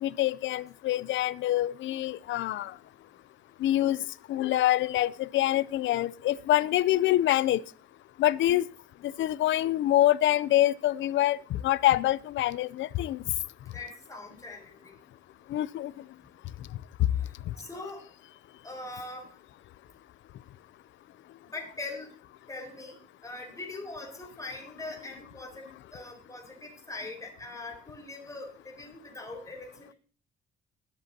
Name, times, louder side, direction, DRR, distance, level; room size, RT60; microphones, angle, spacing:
voice 1, 0.0-2.7 3.6-4.0 4.3-7.6 8.2-8.6 9.0-13.2 15.5-15.9, left 14 dB, 75° left, 0.5 m, -25 dB
voice 2, 13.7-14.9 17.6-18.0 18.6-19.3 21.5-22.1 22.5-29.9, left 2 dB, 15° left, 4.7 m, -42 dB
20.5 x 8.0 x 2.8 m
cardioid pair, 90°, 20 cm